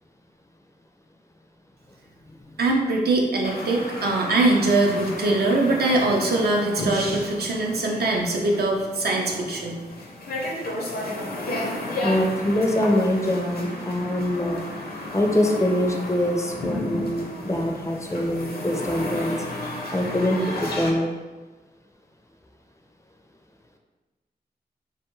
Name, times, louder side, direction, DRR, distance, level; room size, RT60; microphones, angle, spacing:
voice 1, 2.6-9.8, right 2 dB, 75° right, 0 dB, 0.5 m, -22 dB
sound 1, 3.4-20.9, left 1 dB, 65° left, 0.5 m, -33 dB
voice 2, 12.0-14.6 15.1-19.4 19.9-21.1, left 1 dB, 20° left, 2 dB, 0.4 m, -24 dB
2.5 x 2.3 x 3.0 m, 1.2 s
cardioid pair, 45°, 17 cm